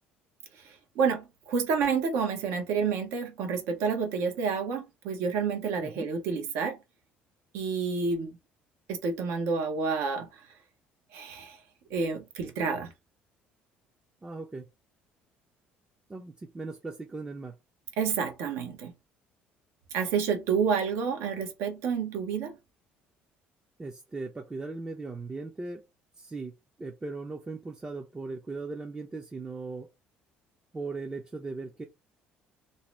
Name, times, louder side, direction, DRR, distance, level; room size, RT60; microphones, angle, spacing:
voice 1, 1.0-6.8 7.5-8.3 8.9-10.3 11.1-11.6 11.9-12.9 18.0-18.9 19.9-22.5, right 5 dB, 75° right, 0.8 m, -29 dB
voice 2, 14.2-14.7 16.1-17.6 23.8-25.9 26.2-26.5 26.8-29.9 30.7-31.8, right 3 dB, 20° right, 0.5 m, -38 dB
2.7 x 2.0 x 3.2 m
supercardioid pair, 90°, 4 cm